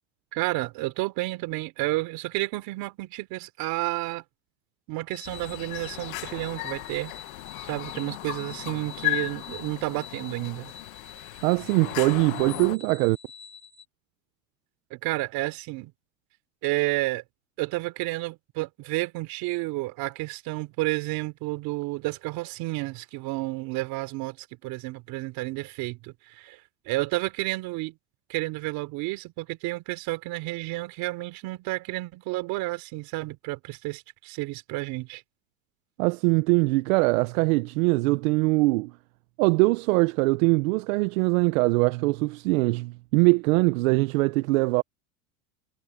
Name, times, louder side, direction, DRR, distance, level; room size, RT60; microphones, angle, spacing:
voice 1, 0.3-4.2 4.9-7.1 7.7-10.7 14.9-15.9 16.6-17.2 17.6-26.6 26.9-27.9 28.3-35.2, right 20 dB, 60° right, 3.5 m, -31 dB
sound 1, 5.1-13.8, left 5 dB, 10° right, 4.3 m, -47 dB
sound 2, 5.3-12.8, left 24 dB, 85° left, 1.2 m, -36 dB
voice 2, 11.4-13.2 36.0-38.9 39.4-44.8, right 25 dB, 85° right, 0.7 m, -22 dB
supercardioid pair, 135°, 40 cm